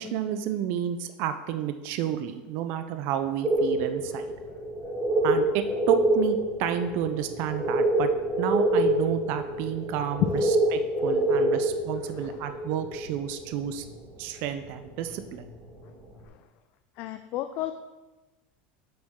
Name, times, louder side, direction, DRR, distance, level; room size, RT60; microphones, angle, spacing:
voice 1, 0.0-4.3 5.2-8.1 8.4-10.2 10.7-13.8 14.2-15.4, right 10 dB, 45° right, 9 dB, 0.5 m, -31 dB
sound 1, 3.4-13.9 14.2-14.3 14.6-14.7 15.2-15.5, right 1 dB, 20° right, 1.9 m, -26 dB
voice 2, 17.0-17.7, left 14 dB, 35° left, 9 dB, 0.3 m, -30 dB
8.3 x 7.6 x 3.7 m, 1.1 s
supercardioid pair, 180°, 5 cm